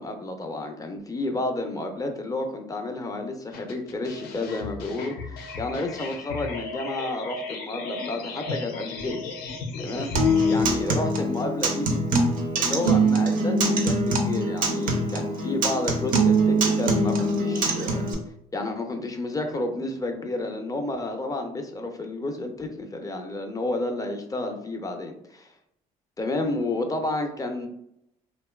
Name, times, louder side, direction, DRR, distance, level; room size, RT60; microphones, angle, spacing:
voice 1, 0.0-9.4 9.8-10.1 10.5-12.0 12.6-18.0 18.5-25.5 26.2-27.7, left 2 dB, 20° left, 4 dB, 0.5 m, -31 dB
sound 1, 3.5-10.7, left 4 dB, 80° left, 0.5 m, -35 dB
Acoustic guitar, 10.1-18.1, right 2 dB, 60° right, 0.6 m, -23 dB
2.8 x 2.2 x 2.2 m, 0.76 s
supercardioid pair, 75°, 16 cm